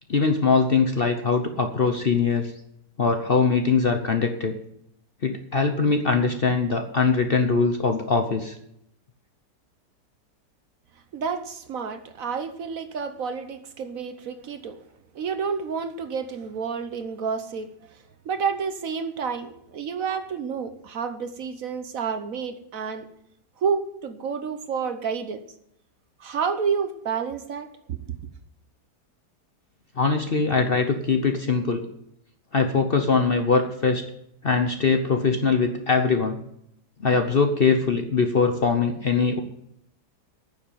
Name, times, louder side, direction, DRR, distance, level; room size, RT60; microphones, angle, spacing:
voice 1, 0.1-2.5 3.0-4.5 5.2-8.6 30.0-31.8 32.5-34.0 34.4-36.4 37.0-39.4, left 4 dB, 45° left, 6 dB, 0.9 m, -22 dB
voice 2, 11.1-14.8 15.1-17.7 18.2-23.1 23.6-25.4 26.2-28.0, right 6 dB, 60° right, 9 dB, 1.2 m, -29 dB
9.5 x 7.2 x 9.2 m, 0.75 s
omnidirectional pair, 1.8 m